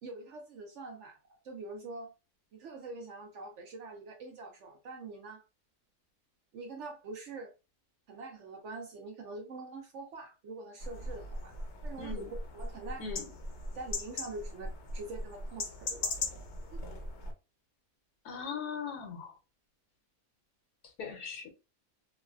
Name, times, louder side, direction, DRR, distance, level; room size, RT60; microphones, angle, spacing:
voice 1, 0.0-2.1 2.5-5.4 6.5-7.5 8.1-11.5 11.8-13.2 13.7-16.2 16.7-16.8, right 3 dB, 65° right, 0.8 m, -44 dB
sound 1, 10.8-17.3, left 2 dB, 60° left, 0.8 m, -39 dB
voice 2, 12.0-12.3 13.0-13.2 18.2-19.3 21.0-21.5, left 6 dB, 85° left, 1.3 m, -39 dB
3.1 x 2.2 x 2.3 m
omnidirectional pair, 1.6 m